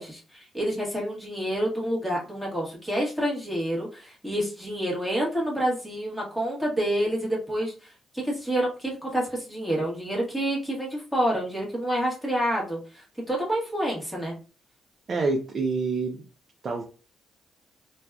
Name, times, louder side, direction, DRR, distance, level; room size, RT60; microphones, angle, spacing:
voice 1, 0.0-7.9 8.2-14.3, right 1 dB, ahead, -4 dB, 1.1 m, -28 dB
voice 2, 15.1-16.2 16.6-16.8, right 3 dB, 40° right, 1 dB, 0.5 m, -27 dB
2.6 x 2.3 x 2.3 m, 0.34 s
cardioid pair, 90°, 0 cm